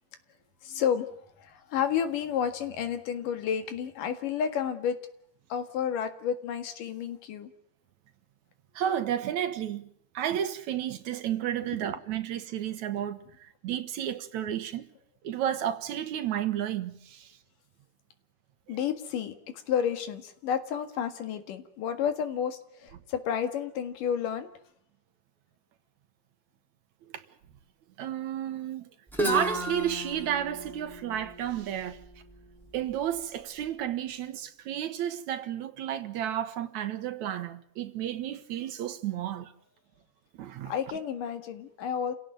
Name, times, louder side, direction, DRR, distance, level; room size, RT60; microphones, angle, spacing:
voice 1, 0.6-1.1 1.4-5.0 5.5-7.5 18.7-24.5 40.7-42.2, left 8 dB, 80° left, 3.4 m, -31 dB
voice 2, 8.8-9.9 10.1-14.9 15.2-17.4 27.1-27.2 28.0-28.9 29.2-32.0 32.7-39.5 40.4-40.7, right 10 dB, 65° right, 2.3 m, -32 dB
Guitar, 29.1-32.9, right 1 dB, ahead, 3.3 m, -34 dB
29.0 x 17.0 x 9.2 m
omnidirectional pair, 3.8 m